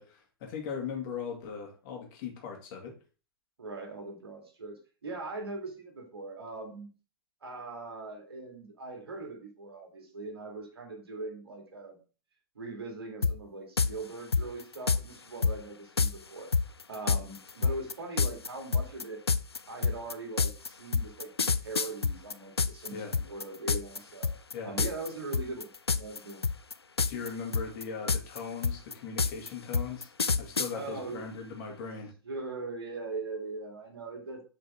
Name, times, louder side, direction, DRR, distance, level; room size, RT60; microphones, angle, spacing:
voice 1, 0.0-2.9 22.9-23.2 24.5-24.7 27.1-30.1 30.4-32.1, left 6 dB, 50° left, 2 dB, 2.2 m, -39 dB
voice 2, 3.6-6.9 7.4-12.0 12.6-16.5 16.9-19.2 19.7-24.3 24.6-26.5 30.7-31.2 32.2-34.4, right 3 dB, 75° right, 1 dB, 2.3 m, -41 dB
sound 1, 13.2-13.3 13.8-13.9 14.3-15.0 15.4-15.5 16.0-16.1 16.5-22.9 23.1-24.0 24.2-24.5 24.8-25.1 25.3-26.2 26.4-27.3 27.5-30.7, left 5 dB, 90° left, 0.4 m, -27 dB
6.9 x 5.2 x 3.6 m, 0.36 s
figure-of-eight pair, 95°, 13 cm